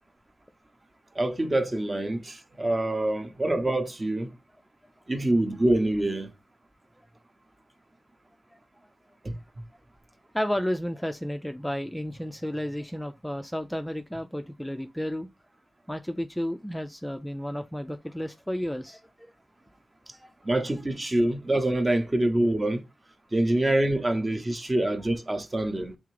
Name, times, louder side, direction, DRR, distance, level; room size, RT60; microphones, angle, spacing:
voice 1, 1.1-4.3 5.1-6.3 9.2-9.3 20.4-22.8 23.3-26.0, right 1 dB, 30° right, 0.8 m, -25 dB
voice 2, 10.3-15.3 15.9-19.3 20.1-20.3, equal, 5° left, 0.4 m, -32 dB
3.6 x 3.3 x 3.2 m
cardioid pair, 65°, 0 cm